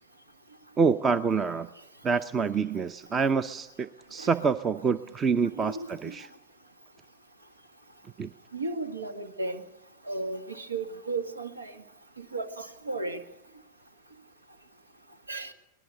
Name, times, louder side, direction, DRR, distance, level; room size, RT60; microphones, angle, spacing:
voice 1, 0.8-1.7 2.0-6.3 8.2-8.3, right 5 dB, 20° right, 15 dB, 0.7 m, -27 dB
voice 2, 5.6-6.2 8.5-9.6 10.1-11.7 12.2-13.2 15.3-15.5, right 3 dB, 80° right, 9 dB, 1.9 m, -34 dB
24.0 x 19.5 x 6.9 m, 0.90 s
figure-of-eight pair, 90°, 0 cm